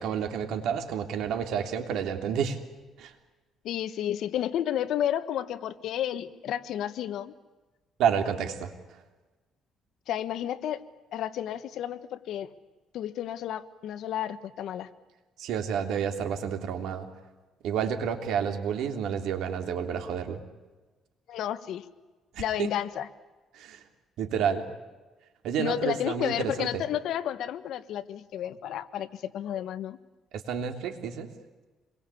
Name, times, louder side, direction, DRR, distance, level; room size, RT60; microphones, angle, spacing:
voice 1, 0.0-2.6 3.0-3.1 8.0-8.7 15.4-17.1 17.6-20.4 22.3-22.7 23.5-23.8 24.2-24.7 25.4-26.8 30.3-31.3, right 7 dB, 80° right, 6 dB, 3.2 m, -30 dB
voice 2, 3.6-7.3 10.1-10.8 11.1-12.5 12.9-14.9 21.3-21.8 22.4-23.1 25.6-30.0, left 11 dB, 70° left, 12 dB, 1.4 m, -31 dB
27.0 x 22.5 x 8.5 m, 1.2 s
cardioid pair, 135°, 0 cm